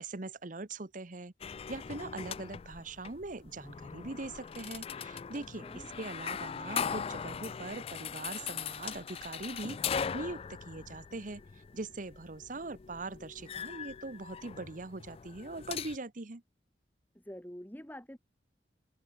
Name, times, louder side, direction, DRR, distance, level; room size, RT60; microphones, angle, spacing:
voice 1, 0.0-9.8 10.1-11.4 11.7-16.4, right 2 dB, 50° right, 1.1 m, -41 dB
sound 1, 1.4-16.0, left 7 dB, 35° left, 0.4 m, -40 dB
voice 2, 5.3-5.9 17.1-18.2, equal, 10° left, 1.9 m, -47 dB
head